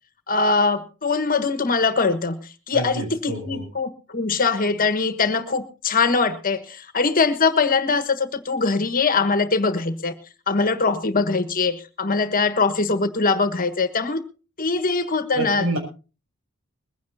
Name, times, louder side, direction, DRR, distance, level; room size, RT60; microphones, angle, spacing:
voice 1, 0.3-10.1 10.5-14.2 14.6-15.8, left 4 dB, 45° left, 11 dB, 1.4 m, -22 dB
voice 2, 2.7-3.7 15.3-15.8, right 1 dB, 70° right, 3 dB, 7.4 m, -27 dB
21.5 x 16.0 x 2.7 m, 0.34 s
head